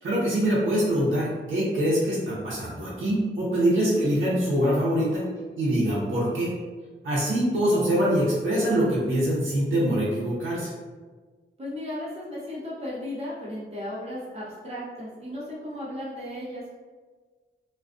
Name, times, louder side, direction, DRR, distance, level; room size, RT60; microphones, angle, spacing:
voice 1, 0.0-5.2 5.6-6.5 7.0-10.7, right 1 dB, 75° right, -8 dB, 0.7 m, -24 dB
voice 2, 3.8-4.1 11.6-16.7, left 1 dB, 30° right, -8 dB, 0.7 m, -35 dB
2.3 x 2.2 x 2.4 m, 1.4 s
wide cardioid pair, 115°, 21 cm